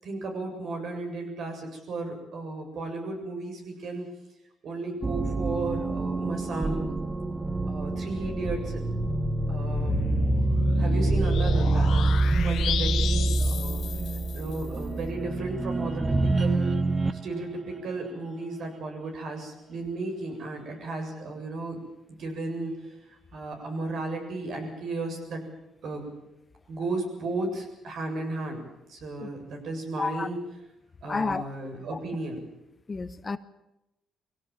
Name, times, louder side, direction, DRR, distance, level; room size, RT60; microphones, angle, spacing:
voice 1, 0.0-4.1 4.6-6.9 7.7-8.8 9.5-10.3 10.8-13.8 14.3-16.8 17.1-21.8 22.1-25.5 25.8-26.1 26.7-28.6 28.9-30.4 31.0-32.4, right 2 dB, 65° right, 3 dB, 7.5 m, -34 dB
sound 1, 5.0-17.3, right 2 dB, 25° right, 1.3 m, -26 dB
sound 2, 8.9-14.6, left 10 dB, 70° left, 1.0 m, -34 dB
voice 2, 31.1-31.4 32.9-33.4, left 4 dB, 30° left, 12 dB, 1.1 m, -30 dB
22.5 x 17.0 x 9.0 m, 0.92 s
cardioid pair, 90°, 0 cm